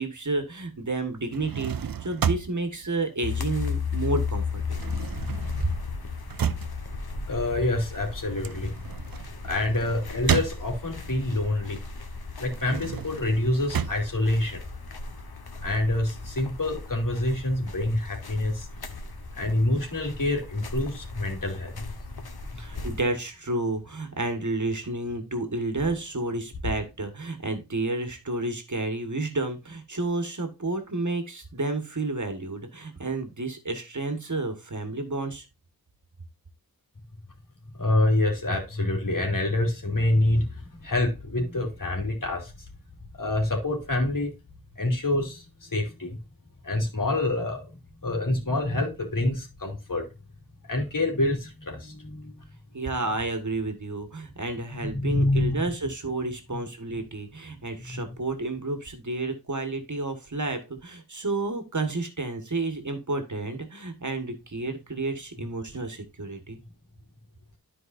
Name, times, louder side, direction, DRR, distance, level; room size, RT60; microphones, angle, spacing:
voice 1, 0.0-5.0 5.6-5.7 22.5-35.4 52.7-66.6, right 2 dB, 50° right, 1.6 m, -31 dB
sound 1, 1.2-4.0 4.3-11.1 11.6-15.1, right 7 dB, 70° right, 0.6 m, -32 dB
sound 2, 3.2-23.0, left 5 dB, 85° left, 1.3 m, -36 dB
voice 2, 7.3-8.7 9.4-11.8 12.4-14.6 15.6-18.7 19.3-21.8 37.7-42.5 43.2-44.3 44.8-46.2 46.6-50.1 50.7-52.5 54.8-55.6 57.9-58.0, left 1 dB, 60° left, 2.9 m, -26 dB
13.5 x 4.8 x 2.6 m
wide cardioid pair, 70°, 37 cm